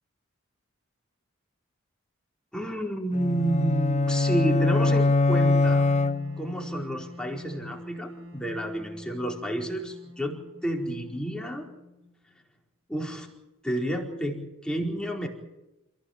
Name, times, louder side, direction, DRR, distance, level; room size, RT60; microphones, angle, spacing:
voice 1, 2.5-5.8 6.4-11.7 12.9-13.3 13.6-15.3, right 1 dB, 5° left, 0 dB, 4.5 m, -30 dB
sound 1, 3.1-6.7, left 2 dB, 35° left, 1.2 m, -23 dB
Wind instrument woodwind instrument, 5.7-12.6, left 1 dB, 80° right, 6.3 m, -46 dB
29.0 x 16.0 x 7.3 m, 0.96 s
head